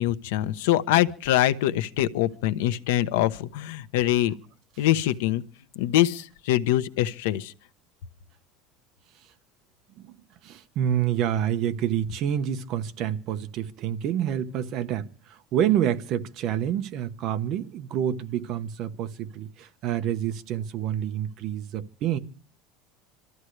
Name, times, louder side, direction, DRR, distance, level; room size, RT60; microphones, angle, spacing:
voice 1, 0.0-4.3 4.8-5.4 5.8-7.5, left 13 dB, 85° left, 1.0 m, -24 dB
voice 2, 10.4-22.2, right 10 dB, 40° right, 1.0 m, -28 dB
26.5 x 13.5 x 3.3 m
cardioid pair, 170°, 0 cm